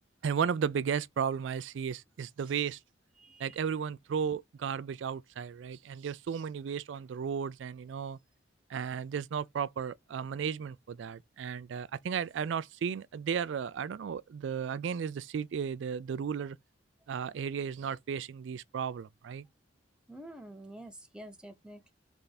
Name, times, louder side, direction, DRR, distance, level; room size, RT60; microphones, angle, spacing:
voice 1, 0.2-2.8 3.4-8.2 8.7-16.6 17.1-19.5, right 7 dB, 75° right, 0.3 m, -34 dB
voice 2, 3.2-3.6 20.1-21.9, right 1 dB, 5° right, 0.8 m, -48 dB
3.6 x 3.3 x 4.0 m
head